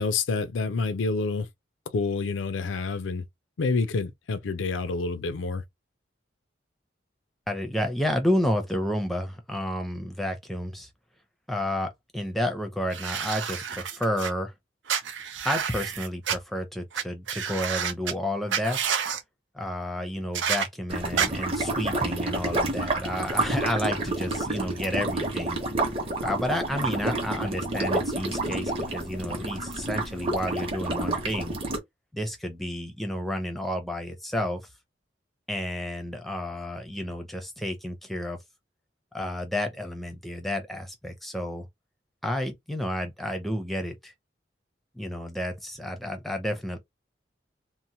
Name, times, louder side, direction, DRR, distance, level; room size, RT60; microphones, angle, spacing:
voice 1, 0.0-1.5 1.9-3.2 3.6-5.6, left 4 dB, 90° left, 0.5 m, -28 dB
voice 2, 7.5-10.9 11.5-14.5 15.4-18.8 19.5-25.6 26.2-31.6 32.1-34.6 35.5-38.4 39.1-41.7 42.2-44.1 45.0-46.8, left 1 dB, ahead, 0.5 m, -31 dB
sound 1, 12.9-14.3 14.9-16.4 16.9-17.0 17.3-18.1 18.5-19.2 20.3-20.7 21.2-21.3, right 7 dB, 85° right, 0.5 m, -29 dB
sound 2, 20.9-31.8, right 2 dB, 30° right, 0.8 m, -29 dB
2.8 x 2.0 x 2.7 m
head